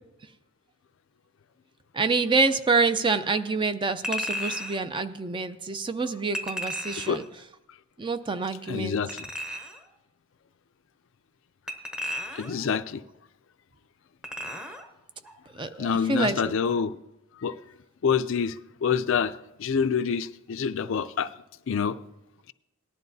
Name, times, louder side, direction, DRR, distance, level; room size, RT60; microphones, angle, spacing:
voice 1, 1.9-7.2 8.0-9.0 15.5-16.5, right 4 dB, 25° right, 0.5 m, -27 dB
Chink clink, 4.0-4.8 6.3-7.3 9.1-9.8 11.7-12.7 14.2-14.9 15.2-15.4, left 1 dB, 5° right, 0.9 m, -34 dB
voice 2, 8.7-9.2 12.3-13.0 15.8-16.9 17.4-17.5 18.0-18.6 18.8-19.3 19.6-21.3 21.7-22.0, left 6 dB, 60° left, 0.4 m, -26 dB
18.0 x 11.0 x 2.7 m
head